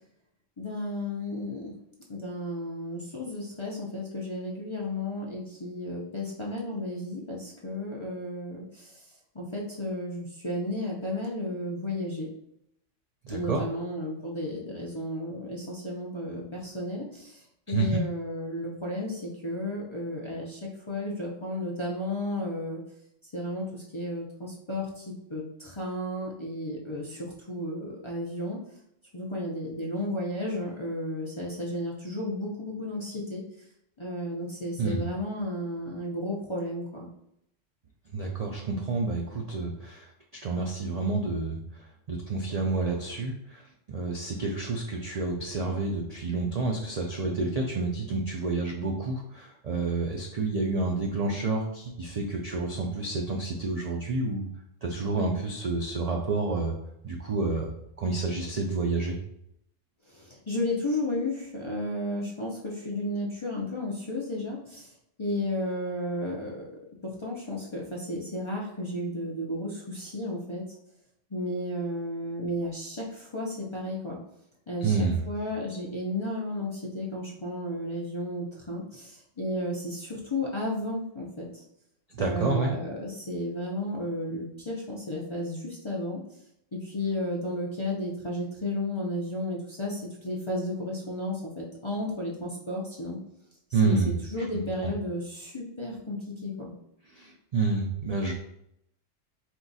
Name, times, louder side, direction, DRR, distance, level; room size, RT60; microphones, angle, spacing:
voice 1, 0.6-1.7 2.1-9.0 9.3-12.3 13.3-22.8 23.2-28.6 29.1-33.4 34.0-37.1 60.1-64.9 65.2-66.6 67.0-70.6 71.3-74.2 74.7-81.6 82.2-86.2 86.7-93.2 93.7-96.7, left 1 dB, 35° left, -3 dB, 0.5 m, -33 dB
voice 2, 13.2-13.6 17.7-18.0 34.8-35.0 38.1-40.1 40.4-41.6 42.1-43.6 43.9-54.5 54.8-56.7 57.0-57.7 58.0-59.2 74.8-75.2 82.2-82.7 93.7-94.2 94.5-94.6 97.2-98.3, right 3 dB, 60° right, 0 dB, 0.4 m, -29 dB
4.4 x 2.3 x 4.0 m, 0.76 s
omnidirectional pair, 1.3 m